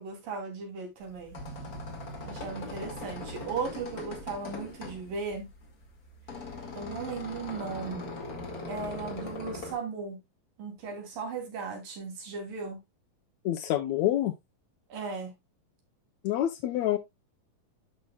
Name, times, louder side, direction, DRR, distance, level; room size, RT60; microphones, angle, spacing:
voice 1, 0.0-1.4 2.2-5.5 6.8-8.1 8.7-10.2 10.6-12.8 14.9-15.3, right 4 dB, 70° right, 4.5 m, -37 dB
sound 1, 1.0-9.7, left 2 dB, 35° left, 1.8 m, -40 dB
voice 2, 13.4-14.3 16.2-17.0, left 13 dB, 80° left, 1.6 m, -27 dB
12.5 x 5.8 x 2.3 m
omnidirectional pair, 4.0 m